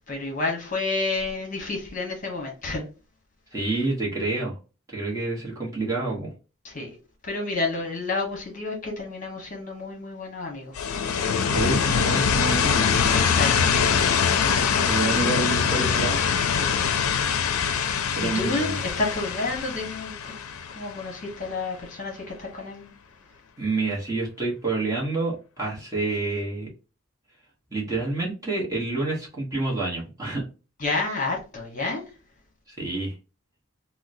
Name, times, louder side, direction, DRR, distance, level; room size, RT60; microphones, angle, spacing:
voice 1, 0.1-2.9 6.6-7.0 7.2-10.8 13.1-13.8 16.6-16.9 17.4-17.9 18.2-20.4 20.6-22.9 30.8-32.0, left 3 dB, 35° left, 1.0 m, -30 dB
voice 2, 3.5-4.5 4.9-6.3 11.5-13.3 14.8-16.2 18.2-18.7 23.6-26.7 27.7-30.4 32.7-33.1, right 3 dB, 15° right, 1.0 m, -28 dB
sound 1, 10.8-21.5, left 6 dB, 85° left, 0.4 m, -23 dB
3.7 x 2.1 x 2.6 m
head